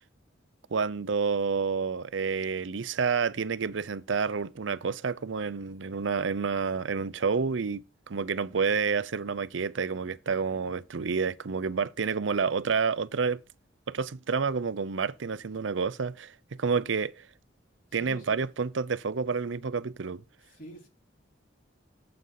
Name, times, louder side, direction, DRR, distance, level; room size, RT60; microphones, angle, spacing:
voice 1, 0.7-13.4 13.9-17.3 17.9-20.2, right 5 dB, 75° right, 0.6 m, -29 dB
voice 2, 17.9-18.4 20.5-20.9, right 1 dB, 45° left, 4.0 m, -45 dB
9.5 x 7.8 x 3.9 m
head